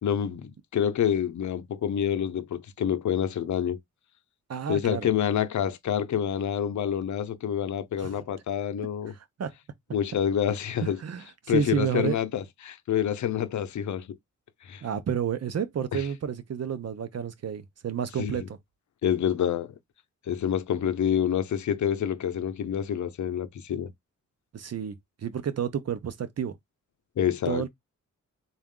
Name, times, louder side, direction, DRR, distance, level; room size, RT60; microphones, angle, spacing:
voice 1, 0.0-3.8 4.7-9.1 9.9-11.0 11.5-14.1 14.6-14.8 15.9-16.1 18.2-18.5 19.0-19.7 20.3-23.9 27.2-27.6, left 9 dB, 70° left, 0.6 m, -27 dB
voice 2, 4.5-5.1 8.0-8.1 9.4-9.5 10.8-12.2 14.8-18.6 24.5-24.9 25.2-26.5 27.5-27.7, right 8 dB, 55° right, 0.7 m, -30 dB
3.9 x 2.4 x 3.7 m
cardioid pair, 90°, 30 cm